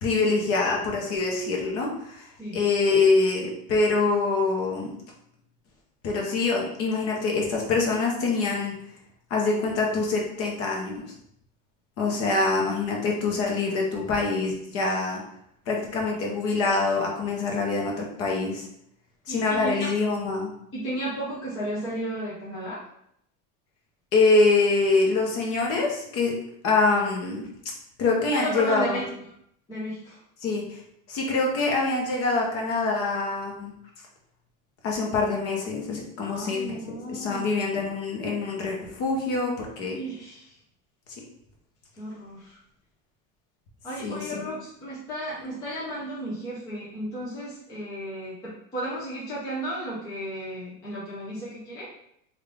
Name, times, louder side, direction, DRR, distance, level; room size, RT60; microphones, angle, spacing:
voice 1, 0.0-2.3 2.5-4.9 6.0-8.7 9.3-11.0 12.0-15.2 15.7-18.7 19.3-20.5 24.1-26.3 26.6-27.5 28.0-29.0 30.4-30.8 31.1-33.7 34.8-40.0 44.0-44.5, left 3 dB, 35° left, -1 dB, 0.8 m, -25 dB
voice 2, 19.3-19.9 20.7-22.9 28.3-29.0 29.7-30.2 36.2-37.8 39.9-40.5 41.9-42.6 43.8-51.9, right 1 dB, 10° left, -8 dB, 0.3 m, -34 dB
3.6 x 2.4 x 3.3 m, 0.72 s
supercardioid pair, 165°, 41 cm